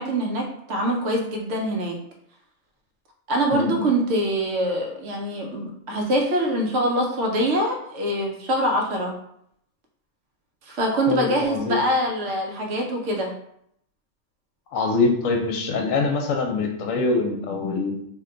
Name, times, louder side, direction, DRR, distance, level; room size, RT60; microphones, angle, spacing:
voice 1, 0.0-2.0 3.3-9.1 10.6-13.3, right 1 dB, 70° right, 1 dB, 0.9 m, -24 dB
voice 2, 3.5-3.9 11.1-11.8 14.7-18.0, left 3 dB, 85° left, 3 dB, 1.0 m, -24 dB
2.6 x 2.2 x 3.7 m, 0.73 s
omnidirectional pair, 1.3 m